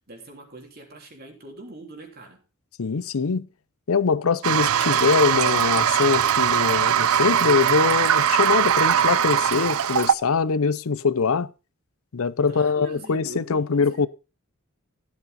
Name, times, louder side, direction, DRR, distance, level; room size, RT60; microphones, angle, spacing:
voice 1, 0.1-2.4 12.5-14.1, right 2 dB, 45° right, 3.3 m, -42 dB
voice 2, 2.8-3.5 3.9-11.5 12.1-14.1, left 5 dB, 75° left, 0.6 m, -23 dB
Toilet flush, 4.4-10.1, right 9 dB, 80° right, 0.5 m, -21 dB
14.5 x 8.4 x 4.1 m
head